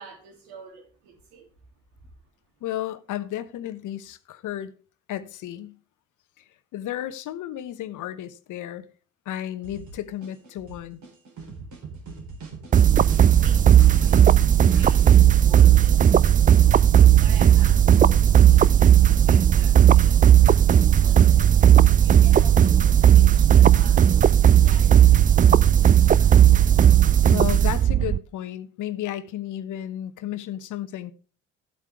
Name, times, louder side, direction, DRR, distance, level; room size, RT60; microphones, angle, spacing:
voice 1, 0.0-1.5 1.9-2.1 13.4-14.2 14.5-16.7 17.2-20.4 21.0-21.6 22.0-25.5 25.8-26.4, right 6 dB, 70° right, 3.1 m, -47 dB
voice 2, 2.6-4.7 5.1-5.8 6.4-6.5 6.7-8.9 9.2-11.0 27.3-31.1, left 12 dB, 55° left, 1.1 m, -33 dB
sound 1, 9.6-15.2, right 4 dB, 55° right, 3.9 m, -40 dB
sound 2, 12.7-28.2, right 10 dB, 25° right, 0.4 m, -15 dB
13.0 x 8.3 x 3.5 m
figure-of-eight pair, 45°, 36 cm